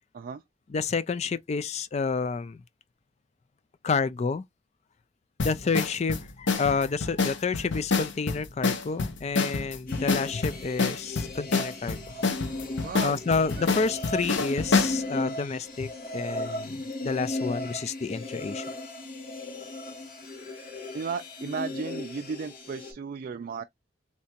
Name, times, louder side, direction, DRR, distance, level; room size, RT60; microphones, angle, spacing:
voice 1, 0.7-2.6 3.8-4.4 5.4-12.0 13.0-18.6, left 4 dB, 40° left, 0.4 m, -29 dB
sound 1, 5.4-15.0, left 4 dB, 90° left, 0.7 m, -27 dB
sound 2, 9.9-22.9, left 2 dB, 55° left, 1.9 m, -36 dB
voice 2, 12.8-13.2 13.6-13.7 20.9-23.6, right 5 dB, 50° right, 0.3 m, -34 dB
3.4 x 2.8 x 2.8 m
head